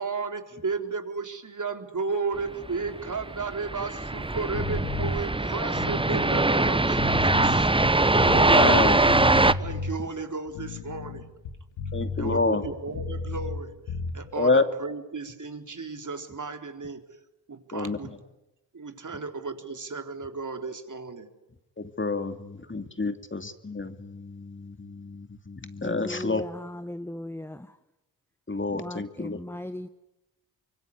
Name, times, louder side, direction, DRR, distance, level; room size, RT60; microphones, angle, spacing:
voice 1, 0.0-7.7 9.6-11.3 12.2-13.8 14.1-17.0 17.5-18.1 18.7-21.3, right 4 dB, 40° right, 6 dB, 3.9 m, -34 dB
sound 1, 2.9-9.5, right 2 dB, 10° right, 1.1 m, -22 dB
sound 2, 4.5-5.1 5.7-8.8 9.1-9.9 10.5-13.6 13.9-14.1, left 3 dB, 85° left, 2.8 m, -33 dB
voice 2, 8.3-9.5 11.9-13.0 14.4-14.6 17.7-18.2 21.8-26.4 28.5-29.4, left 3 dB, 25° left, 8 dB, 2.6 m, -29 dB
voice 3, 25.8-27.7 28.7-29.9, left 1 dB, 5° left, 10 dB, 1.4 m, -37 dB
25.5 x 24.0 x 9.8 m, 0.96 s
supercardioid pair, 45°, 46 cm